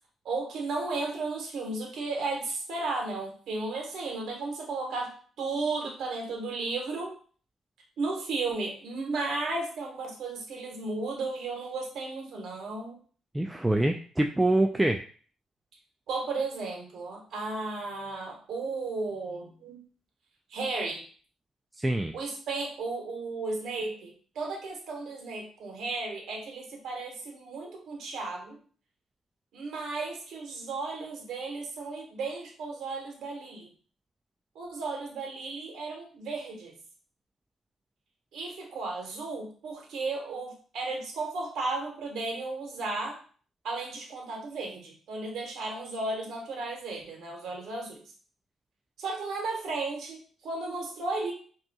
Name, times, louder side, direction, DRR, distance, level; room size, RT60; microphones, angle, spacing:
voice 1, 0.2-5.1 5.4-7.1 8.0-13.0 16.1-19.8 20.5-21.0 22.1-28.6 29.5-33.7 34.5-36.7 38.3-43.2 43.6-48.0 49.0-51.3, right 3 dB, 75° right, 0 dB, 1.3 m, -34 dB
voice 2, 13.3-15.0 21.8-22.1, right 1 dB, 10° right, 4 dB, 0.3 m, -25 dB
5.3 x 2.8 x 2.3 m, 0.44 s
cardioid pair, 90°, 0 cm